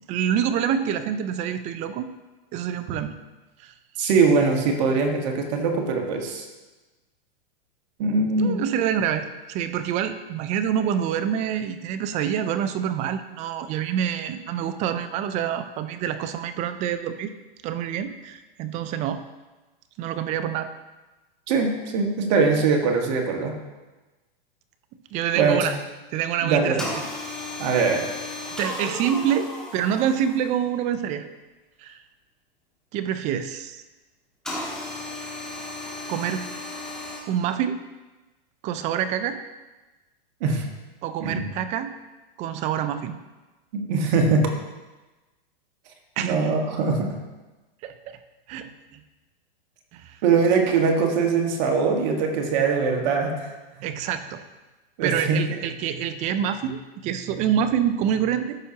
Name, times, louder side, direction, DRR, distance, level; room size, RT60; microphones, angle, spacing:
voice 1, 0.1-2.1 2.5-3.1 3.6-3.7 8.4-17.3 17.6-19.2 20.0-20.7 25.1-25.8 26.1-26.9 28.6-31.2 31.8-32.0 32.9-33.8 34.6-34.7 36.1-36.5 37.3-37.8 38.6-39.4 41.0-41.9 42.4-43.2 46.2-46.5 47.8-48.2 48.5-49.0 49.9-50.2 53.8-54.4 55.0-58.6, right 9 dB, 25° right, 11 dB, 0.4 m, -26 dB
voice 2, 4.0-6.4 8.0-8.6 21.5-23.5 25.4-25.7 26.4-26.9 27.6-28.0 40.4-40.7 41.2-41.4 43.7-44.5 46.2-47.2 50.2-53.5 55.0-55.6, right 4 dB, 50° right, 2 dB, 1.5 m, -22 dB
sound 1, 26.8-30.7 34.4-37.2, left 2 dB, ahead, 1.7 m, -34 dB
13.5 x 5.5 x 2.8 m, 1.2 s
hypercardioid pair, 140°, 29 cm